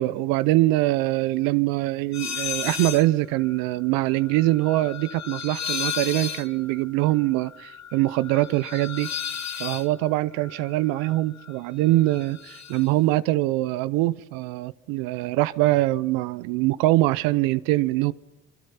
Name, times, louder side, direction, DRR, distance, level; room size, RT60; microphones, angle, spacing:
voice 1, 0.0-9.1 9.6-18.1, right 17 dB, 80° right, 0.8 m, -23 dB
sound 1, 2.1-3.1 3.4-11.6 11.9-12.9, left 8 dB, 55° left, 1.5 m, -34 dB
27.0 x 24.5 x 5.8 m
hypercardioid pair, 55°, 34 cm